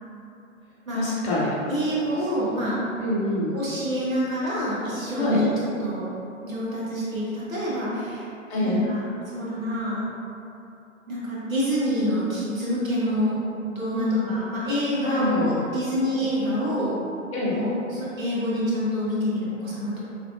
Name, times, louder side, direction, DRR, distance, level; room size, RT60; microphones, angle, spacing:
voice 1, 0.9-1.5 3.0-3.6 5.2-5.4 8.5-8.8 13.9-14.3 15.0-15.6 17.3-17.5, left 1 dB, 50° left, -7 dB, 1.4 m, -25 dB
voice 2, 1.7-2.8 3.5-6.1 6.4-8.3 8.6-10.0 11.1-13.4 13.7-17.0 17.5-20.0, equal, 80° right, -8 dB, 1.4 m, -27 dB
6.0 x 2.5 x 2.4 m, 2.8 s
figure-of-eight pair, 115°, 40 cm